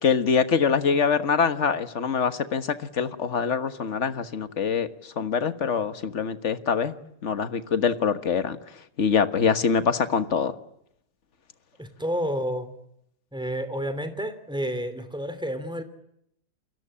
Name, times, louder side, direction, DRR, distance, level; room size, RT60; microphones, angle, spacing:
voice 1, 0.0-4.9 5.2-6.9 7.2-8.6 9.0-10.5, left 6 dB, 40° left, 11 dB, 1.5 m, -24 dB
voice 2, 11.8-12.7 13.3-15.8, equal, ahead, 11 dB, 2.8 m, -30 dB
29.0 x 23.0 x 8.7 m, 0.76 s
omnidirectional pair, 2.2 m